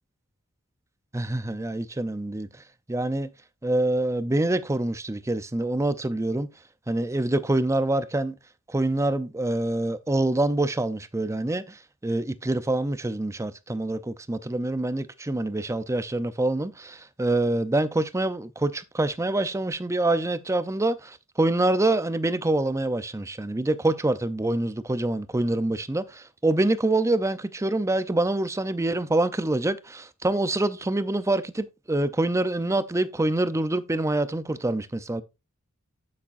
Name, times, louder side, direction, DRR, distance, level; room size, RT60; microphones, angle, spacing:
voice 1, 1.1-2.5 2.9-3.3 3.6-6.5 6.9-8.3 8.7-35.2, right 2 dB, 15° right, 0.5 m, -26 dB
8.6 x 8.4 x 2.5 m
head